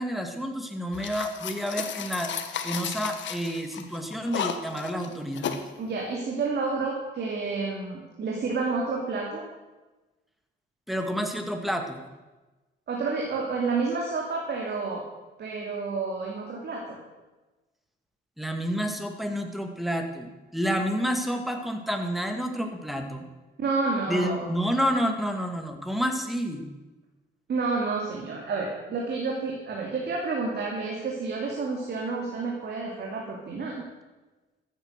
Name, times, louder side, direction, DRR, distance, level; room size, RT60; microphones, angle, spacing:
voice 1, 0.0-2.3 2.6-5.5 10.9-12.0 18.4-23.2 24.1-26.6, equal, ahead, 5 dB, 2.1 m, -29 dB
sound 1, 0.9-5.7, left 8 dB, 70° left, 1.3 m, -34 dB
voice 2, 5.8-9.4 12.9-15.0 15.4-17.0 23.6-24.5 24.8-24.9 27.5-33.8, right 4 dB, 55° right, -1 dB, 2.7 m, -30 dB
13.5 x 9.5 x 6.7 m, 1.2 s
cardioid pair, 90°, 20 cm